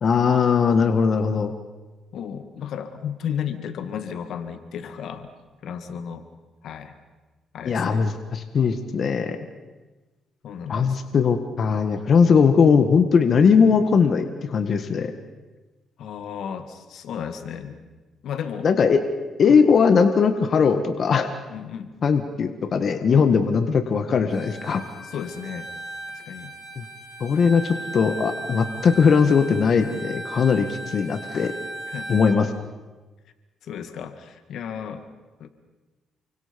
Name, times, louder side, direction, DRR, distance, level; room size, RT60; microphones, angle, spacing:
voice 1, 0.0-1.5 7.6-9.4 10.7-15.1 18.6-19.0 19.4-21.3 22.0-24.8 26.8-26.9 27.2-31.5 32.1-32.5, left 6 dB, 50° left, 7 dB, 1.7 m, -19 dB
voice 2, 2.1-5.3 5.6-6.2 6.6-7.0 7.5-8.0 10.4-11.0 16.0-17.8 18.2-18.7 19.5-19.6 21.5-21.9 25.1-25.7 26.1-26.5 31.9-32.2 33.6-35.0 35.4-35.5, left 8 dB, 75° left, 8 dB, 2.0 m, -33 dB
Bowed string instrument, 24.3-32.4, right 2 dB, 20° left, 6.1 m, -37 dB
29.0 x 24.5 x 5.4 m, 1.2 s
cardioid pair, 90°, 0 cm